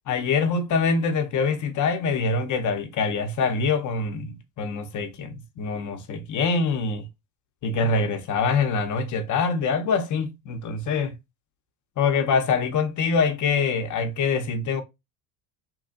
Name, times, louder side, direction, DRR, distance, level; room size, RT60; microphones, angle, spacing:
voice 1, 0.1-7.1 7.6-11.2 12.0-14.8, left 4 dB, 40° left, 0.7 m, -24 dB
3.0 x 2.4 x 2.4 m
hypercardioid pair, 80°, 47 cm